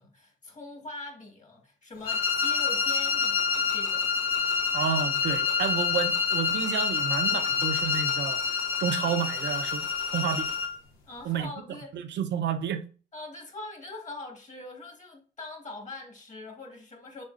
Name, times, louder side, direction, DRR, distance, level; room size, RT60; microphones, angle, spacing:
voice 1, 0.0-4.1 11.1-12.0 13.1-17.2, left 2 dB, 40° left, 1.7 m, -43 dB
sound 1, 2.0-10.8, left 5 dB, 90° left, 0.8 m, -27 dB
voice 2, 4.7-10.5 11.2-11.5 11.9-12.8, right 8 dB, 65° right, 0.6 m, -30 dB
5.3 x 3.7 x 2.5 m
cardioid pair, 90°, 20 cm